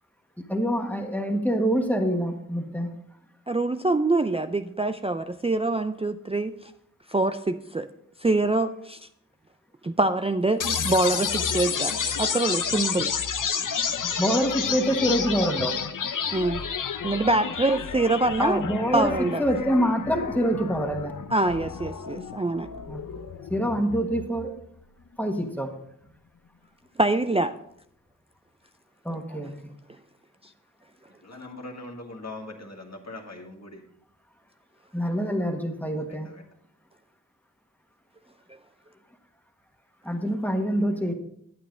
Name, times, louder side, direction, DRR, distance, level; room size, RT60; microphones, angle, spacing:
voice 1, 0.5-3.0 14.2-15.8 18.4-21.2 22.9-23.0 23.5-24.5 25.2-25.7 29.0-29.7 34.9-36.3 40.0-41.1, equal, 5° left, 4 dB, 1.5 m, -26 dB
voice 2, 3.5-6.5 7.1-7.9 8.2-9.0 9.8-13.1 16.3-16.6 17.0-18.7 18.9-19.4 21.3-22.7 27.0-27.5, right 2 dB, 20° right, 8 dB, 0.4 m, -25 dB
sound 1, 10.6-24.6, left 7 dB, 75° left, 0.7 m, -30 dB
voice 3, 31.2-33.9 36.0-36.5, left 2 dB, 55° left, 2 dB, 1.9 m, -41 dB
9.3 x 9.0 x 3.9 m, 0.73 s
wide cardioid pair, 50°, 32 cm